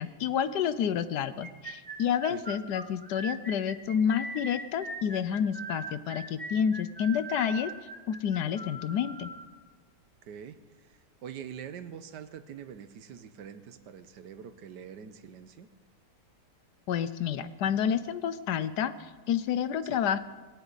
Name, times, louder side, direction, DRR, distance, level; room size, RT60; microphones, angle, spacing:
voice 1, 0.0-7.7 8.1-9.3 16.9-20.2, left 8 dB, 75° left, 13 dB, 1.3 m, -29 dB
sound 1, 1.4-9.5, right 2 dB, 5° right, 0.8 m, -40 dB
voice 2, 10.2-15.7 19.9-20.0, right 8 dB, 80° right, 11 dB, 1.5 m, -44 dB
20.0 x 18.0 x 4.0 m, 1.4 s
omnidirectional pair, 1.8 m